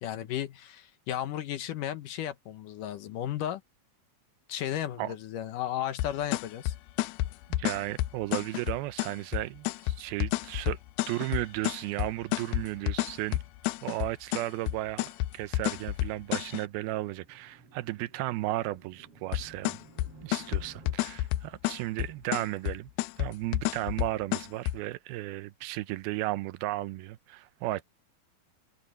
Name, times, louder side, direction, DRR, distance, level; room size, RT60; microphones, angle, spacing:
voice 1, 0.0-3.6 4.5-6.7, left 11 dB, 70° left, 2.4 m, -34 dB
sound 1, 6.0-16.6 19.3-24.8, left 16 dB, 90° left, 2.6 m, -30 dB
voice 2, 7.5-10.8 11.1-13.4 13.8-19.8 20.2-22.9 23.2-27.8, right 17 dB, 85° right, 2.6 m, -34 dB
sound 2, 16.2-20.9, right 3 dB, 40° right, 5.0 m, -55 dB
omnidirectional pair, 4.3 m